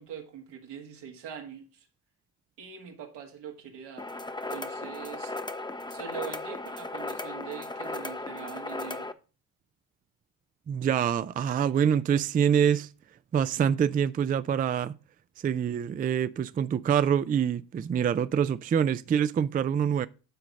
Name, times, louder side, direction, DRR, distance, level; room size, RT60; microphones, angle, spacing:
voice 1, 0.0-1.9 2.6-4.1 4.5-5.3 5.9-9.1, right 8 dB, 80° right, 1.7 m, -42 dB
sound 1, 4.0-9.1, left 2 dB, 10° left, 0.6 m, -36 dB
voice 2, 10.7-12.9 13.3-15.0 15.4-20.1, right 8 dB, 25° right, 0.3 m, -25 dB
9.1 x 4.0 x 4.9 m
supercardioid pair, 60°, 41 cm